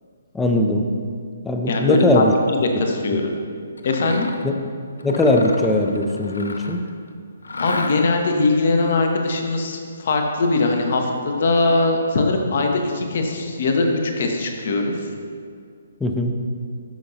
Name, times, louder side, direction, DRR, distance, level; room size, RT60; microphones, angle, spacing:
voice 1, 0.3-0.9 1.4-2.3 4.4-4.5 5.0-6.8 16.0-16.3, left 1 dB, 5° left, 3 dB, 0.5 m, -19 dB
voice 2, 1.7-2.3 2.8-3.3 3.8-4.3 7.6-15.0, left 3 dB, 50° left, 3 dB, 0.9 m, -21 dB
Mechanisms, 3.8-4.5 5.0-6.9 7.4-8.3, left 2 dB, 70° left, 0.5 m, -32 dB
12.5 x 5.4 x 2.8 m, 2.2 s
figure-of-eight pair, 130°, 0 cm